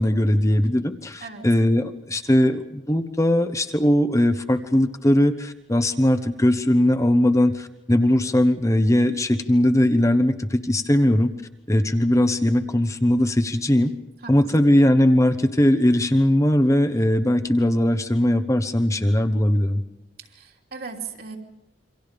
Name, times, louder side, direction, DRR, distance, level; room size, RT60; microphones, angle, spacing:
voice 1, 0.0-11.3 11.7-13.9 14.3-19.8, left 1 dB, 15° left, 9 dB, 1.0 m, -20 dB
voice 2, 14.2-14.8 20.2-21.4, right 5 dB, 55° right, 1 dB, 3.0 m, -38 dB
28.0 x 25.0 x 5.2 m, 0.91 s
head